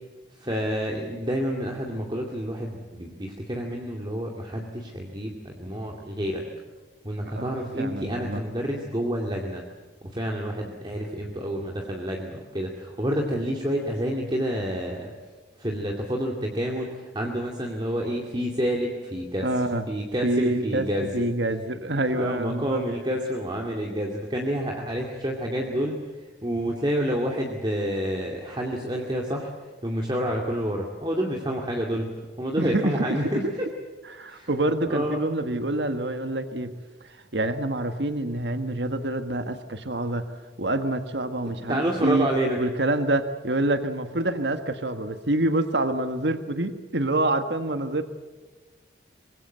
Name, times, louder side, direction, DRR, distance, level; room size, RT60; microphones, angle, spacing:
voice 1, 0.4-6.4 7.0-9.6 10.1-15.1 15.6-19.5 19.9-21.2 22.1-26.0 26.4-29.5 29.8-32.1 32.4-33.7 34.3-34.5 34.9-35.2 41.7-42.6, equal, 25° right, 0 dB, 2.4 m, -28 dB
voice 2, 7.2-8.4 19.4-19.8 20.2-20.9 21.1-22.8 32.6-33.3 34.0-36.8 37.0-40.2 40.6-42.3 42.6-48.0, right 2 dB, 75° right, 9 dB, 1.5 m, -26 dB
24.5 x 22.5 x 8.0 m, 1.3 s
head